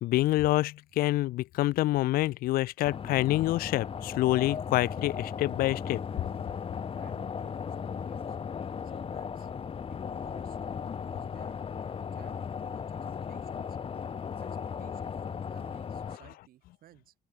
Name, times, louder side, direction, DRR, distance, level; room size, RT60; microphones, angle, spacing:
voice 1, 0.0-6.0, left 16 dB, 80° left, 0.4 m, -27 dB
sound 1, 2.8-16.2, left 6 dB, 35° left, 1.5 m, -36 dB
voice 2, 7.0-8.6 8.8-9.5 9.9-10.6 11.1-11.6 12.1-13.0 13.3-13.8 14.4-14.5 14.8-17.1, right 13 dB, 75° right, 5.5 m, -57 dB
open air
cardioid pair, 115°, 15 cm